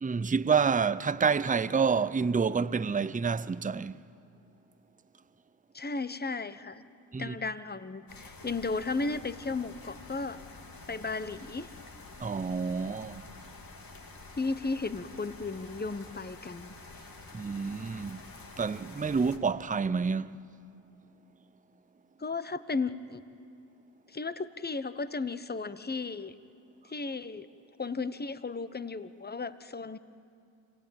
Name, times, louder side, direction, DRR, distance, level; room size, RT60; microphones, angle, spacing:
voice 1, 0.0-4.0 7.1-7.3 12.2-13.2 17.3-18.2 18.6-20.3, right 5 dB, 15° right, 0.6 m, -28 dB
voice 2, 5.7-6.8 7.2-10.4 10.9-11.7 14.4-16.7 22.2-23.2 24.1-26.3 26.8-27.5 27.8-30.0, left 3 dB, 20° left, 1.1 m, -34 dB
sound 1, 8.1-19.4, left 3 dB, 45° left, 2.9 m, -49 dB
26.5 x 17.5 x 8.9 m
supercardioid pair, 45°, 47 cm